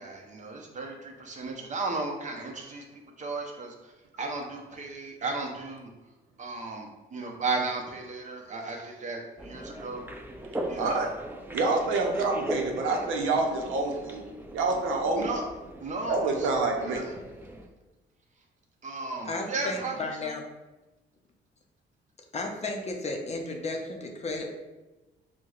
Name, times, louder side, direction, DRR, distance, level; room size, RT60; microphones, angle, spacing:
voice 1, 0.0-3.9 4.2-5.9 6.4-10.0 10.7-11.1 15.2-15.4 15.8-16.5 16.8-17.1 18.8-20.0 20.2-20.3, right 3 dB, 40° right, 1 dB, 0.7 m, -35 dB
sound 1, 9.4-17.7, right 1 dB, 10° right, 0.4 m, -39 dB
voice 2, 10.8-11.1 11.5-14.2 14.5-15.3 16.1-17.0, right 3 dB, 85° right, 1 dB, 0.6 m, -27 dB
voice 3, 19.2-20.4 22.3-24.5, left 2 dB, 35° left, 2 dB, 0.6 m, -33 dB
4.5 x 2.1 x 2.4 m, 1.1 s
cardioid pair, 90°, 20 cm